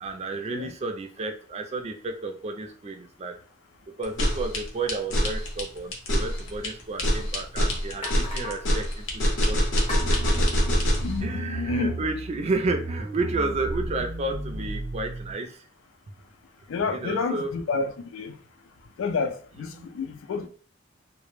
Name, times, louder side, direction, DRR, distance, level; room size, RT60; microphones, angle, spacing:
voice 1, 0.0-3.4 4.0-9.6 11.2-15.7 16.9-17.5 19.7-19.9, right 3 dB, 35° right, 0.3 m, -31 dB
sound 1, 4.0-11.1, equal, 75° left, 0.7 m, -24 dB
sound 2, 6.7-6.8 7.4-7.5 8.0-8.8 9.9-11.4, left 2 dB, 30° left, 0.7 m, -38 dB
sound 3, 10.0-15.3, right 1 dB, 85° right, 0.7 m, -33 dB
voice 2, 11.0-11.9 16.7-18.4 19.0-20.5, left 4 dB, 90° left, 0.3 m, -29 dB
2.1 x 2.0 x 3.0 m
head